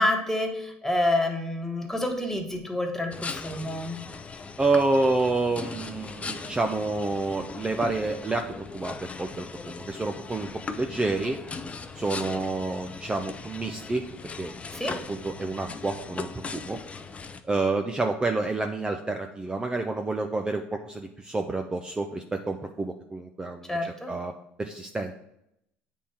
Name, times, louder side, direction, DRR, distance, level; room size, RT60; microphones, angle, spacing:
voice 1, 0.0-4.0 14.7-15.0 23.7-24.1, left 1 dB, 10° left, 3 dB, 1.4 m, -28 dB
sound 1, 3.1-17.4, left 4 dB, 30° left, 0.6 m, -39 dB
voice 2, 4.6-8.5 8.7-11.4 11.9-14.1 14.4-14.5 14.9-16.8 17.5-24.3 24.6-25.1, right 3 dB, 20° right, 4 dB, 0.6 m, -29 dB
8.5 x 3.7 x 4.2 m, 0.78 s
hypercardioid pair, 70°, 5 cm